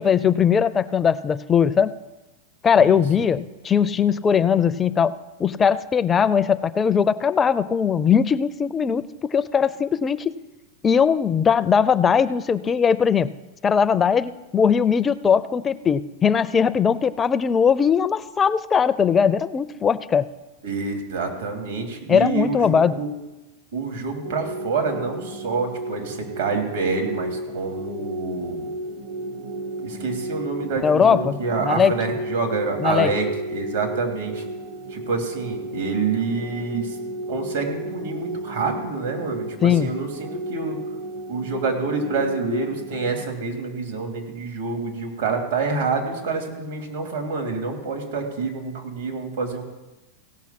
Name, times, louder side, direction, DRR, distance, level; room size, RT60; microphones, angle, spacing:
voice 1, 0.0-1.9 2.6-5.1 5.4-10.4 10.8-13.3 13.6-20.3 22.1-22.9 30.8-31.9 32.8-33.1 39.6-39.9, left 7 dB, 25° left, 15 dB, 0.4 m, -20 dB
voice 2, 2.8-3.3 20.6-23.1 23.7-28.7 29.8-34.4 34.9-36.9 37.3-40.8 41.3-49.6, right 4 dB, 80° right, 3 dB, 2.9 m, -27 dB
sound 1, 24.2-43.3, right 1 dB, 55° right, 1.0 m, -33 dB
17.0 x 5.9 x 5.9 m, 1.1 s
hypercardioid pair, 110°, 0 cm